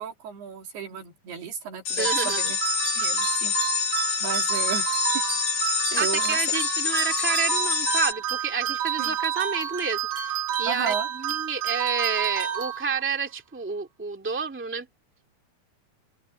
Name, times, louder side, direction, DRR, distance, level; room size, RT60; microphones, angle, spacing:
voice 1, 0.0-2.6 2.9-3.8 4.2-5.0 5.9-6.4 9.0-9.2 10.7-11.1, right 7 dB, 75° right, 5.1 m, -34 dB
sound 1, 1.9-8.1, left 7 dB, 45° left, 2.4 m, -26 dB
voice 2, 2.0-2.4 5.9-14.9, right 5 dB, 5° right, 0.9 m, -29 dB
sound 2, 2.0-13.3, right 10 dB, 55° right, 2.6 m, -29 dB
open air
omnidirectional pair, 4.6 m